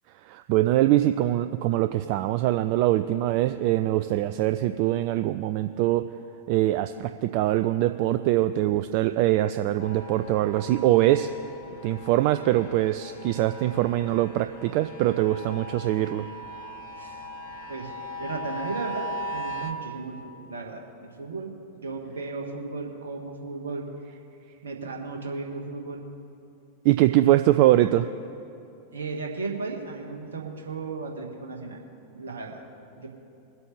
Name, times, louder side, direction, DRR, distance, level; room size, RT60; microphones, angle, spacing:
voice 1, 0.3-6.0 6.5-11.3 11.8-16.3 26.8-28.1, right 14 dB, 45° right, 9 dB, 0.3 m, -23 dB
sound 1, 9.8-19.7, equal, 55° left, 1.1 m, -39 dB
voice 2, 18.2-23.9 24.6-26.0 28.9-31.8 32.1-32.6 32.9-33.1, right 4 dB, 70° right, 1 dB, 1.6 m, -35 dB
22.5 x 8.2 x 3.3 m, 2.7 s
figure-of-eight pair, 90°, 0 cm